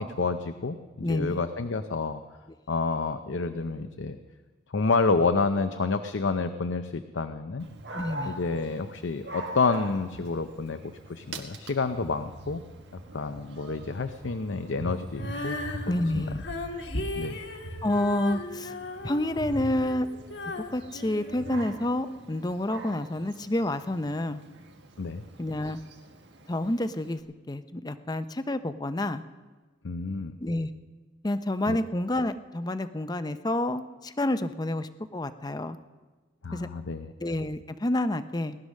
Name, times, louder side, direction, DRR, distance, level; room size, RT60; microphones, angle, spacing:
voice 1, 0.0-2.2 2.7-4.2 4.7-7.7 8.2-10.8 11.1-12.6 13.1-15.6 16.1-16.2 17.2-17.4 25.0-25.2 29.8-30.3 31.7-31.8 36.4-37.1, left 4 dB, 85° left, 8 dB, 0.6 m, -29 dB
voice 2, 1.0-1.4 7.9-8.4 15.9-16.4 17.8-18.7 19.0-20.1 20.7-24.4 25.4-25.8 26.5-27.2 27.5-29.2 30.4-30.7 31.2-35.8 36.5-36.7 37.2-38.6, left 1 dB, 20° left, 11 dB, 0.6 m, -29 dB
Dog, 7.6-27.2, right 2 dB, 70° right, 1.6 m, -43 dB
Female singing, 15.1-22.2, left 1 dB, 70° left, 1.6 m, -37 dB
18.5 x 11.5 x 6.5 m, 1.3 s
head